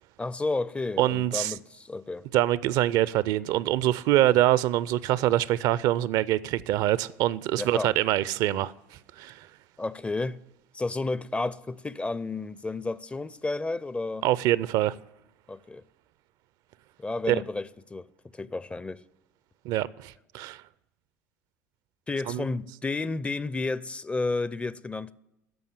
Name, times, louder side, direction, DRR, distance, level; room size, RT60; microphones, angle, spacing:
voice 1, 0.2-2.3 7.6-7.9 9.8-10.4 10.7-14.3 15.5-15.8 17.0-18.1 18.3-19.0 22.1-25.1, left 3 dB, 15° left, 0.4 m, -31 dB
voice 2, 1.0-1.5 2.3-8.7 9.2-9.4 14.2-14.9 17.3-17.4 19.6-20.6 22.3-22.4, right 14 dB, 55° right, 0.4 m, -24 dB
14.0 x 5.4 x 8.6 m
hypercardioid pair, 70°, 8 cm